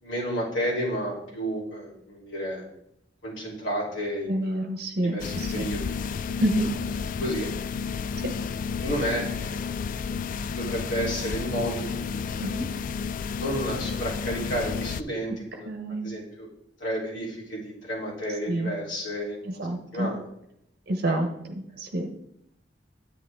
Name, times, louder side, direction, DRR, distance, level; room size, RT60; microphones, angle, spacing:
voice 1, 0.0-2.7 3.2-4.7 5.0-6.0 6.3-6.4 7.2-7.5 8.8-9.8 10.4-12.6 13.3-15.7 16.0-16.5 16.8-19.6 19.9-20.3 21.0-21.2, equal, 80° left, -4 dB, 3.6 m, -32 dB
voice 2, 4.3-5.6 6.4-6.7 12.4-12.7 15.6-16.1 18.5-18.7 19.6-20.1 20.9-21.3 21.8-22.1, right 1 dB, 55° right, 4 dB, 0.9 m, -27 dB
sound 1, 5.2-15.0, left 6 dB, 45° left, 0.3 m, -31 dB
10.0 x 8.7 x 3.6 m, 0.79 s
head